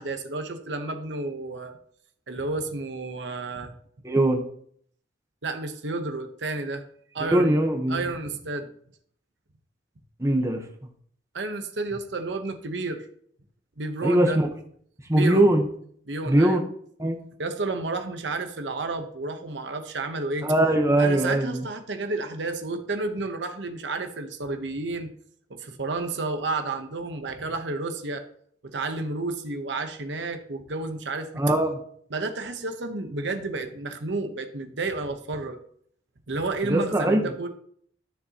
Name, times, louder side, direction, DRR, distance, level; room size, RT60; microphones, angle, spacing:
voice 1, 0.0-1.8 2.3-3.7 5.4-6.8 7.1-7.6 7.9-8.7 11.3-13.1 13.8-14.4 15.1-15.4 16.1-16.6 17.4-20.5 21.0-25.1 25.5-28.2 28.6-31.4 32.1-35.6 36.3-37.5, right 3 dB, 70° right, 7 dB, 1.0 m, -31 dB
voice 2, 4.0-4.4 7.2-8.1 10.2-10.6 14.0-14.5 15.1-15.6 16.3-16.7 17.0-17.2 20.4-21.6 31.4-31.8 36.6-37.2, right 1 dB, 15° right, 4 dB, 1.0 m, -21 dB
12.5 x 6.9 x 2.9 m, 0.63 s
head